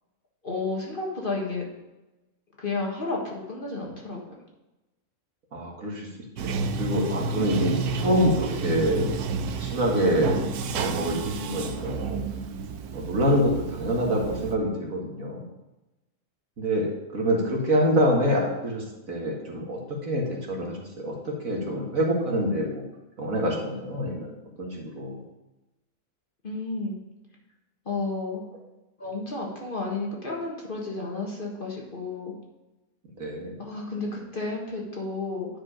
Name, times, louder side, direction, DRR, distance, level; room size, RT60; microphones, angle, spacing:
voice 1, 0.4-1.6 2.6-4.2 26.4-27.0 27.8-28.4 29.0-32.3 33.6-35.5, left 3 dB, 35° left, -2 dB, 1.6 m, -32 dB
voice 2, 5.5-6.1 6.4-9.1 9.6-10.4 10.7-12.2 12.9-15.4 16.6-22.8 23.2-25.2 33.2-33.6, equal, 60° right, -1 dB, 2.1 m, -26 dB
Bathtub (filling or washing), 6.4-14.6, right 5 dB, 80° right, 1.2 m, -31 dB
10.0 x 5.0 x 5.0 m, 1.0 s
omnidirectional pair, 1.6 m